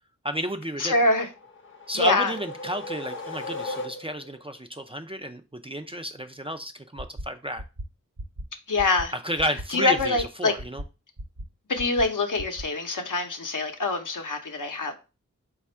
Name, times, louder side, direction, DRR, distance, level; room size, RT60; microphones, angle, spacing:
voice 1, 0.2-0.9 1.9-7.6 9.1-10.8, equal, 20° right, 0.4 m, -31 dB
voice 2, 0.8-1.3 1.9-2.3 8.7-9.1 9.7-10.5 11.7-14.9, left 3 dB, 70° left, 0.7 m, -24 dB
sound 1, 1.3-4.4, left 2 dB, 35° left, 0.7 m, -37 dB
sound 2, 7.0-7.2 7.6-7.8 8.2-8.4 8.8-9.0 9.4-9.6 10.0-10.2 10.6-10.8 11.2-11.4 11.8-12.0 12.4-12.6, right 1 dB, 50° right, 1.0 m, -36 dB
4.1 x 2.4 x 4.2 m
wide cardioid pair, 45°, 33 cm